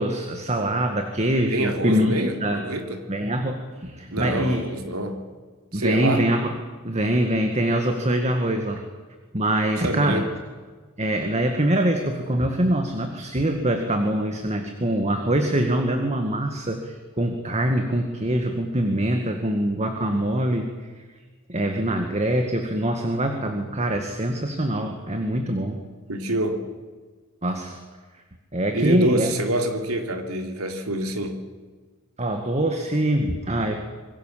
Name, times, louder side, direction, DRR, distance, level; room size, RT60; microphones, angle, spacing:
voice 1, 0.0-2.6 3.1-4.6 5.7-6.5 6.8-8.8 9.3-10.2 11.0-20.7 21.5-25.8 27.4-27.8 28.5-29.3 32.2-33.7, right 1 dB, 30° right, 5 dB, 2.0 m, -24 dB
voice 2, 1.5-3.0 4.1-5.3 5.7-6.2 9.8-10.3 26.1-26.7 28.7-31.5, right 1 dB, 85° right, 5 dB, 3.2 m, -26 dB
26.5 x 22.5 x 7.6 m, 1.4 s
head